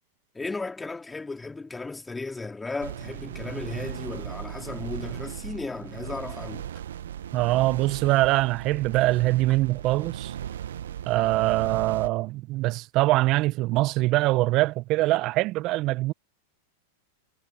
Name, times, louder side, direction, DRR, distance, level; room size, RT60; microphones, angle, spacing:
voice 1, 0.3-6.7, left 3 dB, 10° left, 3.6 m, -35 dB
sound 1, 2.8-12.1, right 10 dB, 75° right, 0.9 m, -37 dB
voice 2, 7.3-10.4 11.1-16.1, right 19 dB, 45° right, 0.7 m, -23 dB
hypercardioid pair, 105°, 0 cm